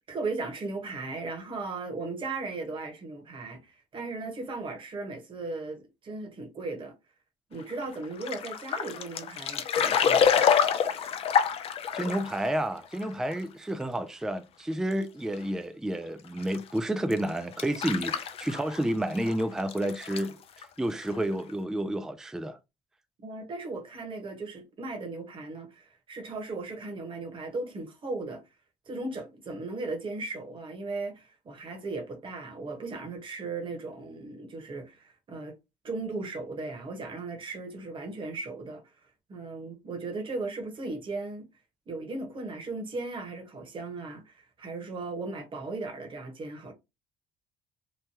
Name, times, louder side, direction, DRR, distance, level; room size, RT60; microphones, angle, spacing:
voice 1, 0.1-6.9 7.5-10.5 23.2-28.4 28.9-35.5 35.8-38.8 39.3-41.5 41.9-46.7, right 3 dB, 40° right, 1.3 m, -37 dB
sound 1, 7.7-12.5 13.0-13.1 13.3-13.4 13.8-13.9 14.9-15.0 16.4-16.6 17.1-18.9 19.1-20.3 20.6-20.7 20.9-21.2 21.5-21.6, left 7 dB, 50° left, 0.5 m, -27 dB
voice 2, 11.9-20.4 20.8-22.6, right 1 dB, 5° right, 0.4 m, -30 dB
3.2 x 2.2 x 2.9 m
cardioid pair, 95°, 13 cm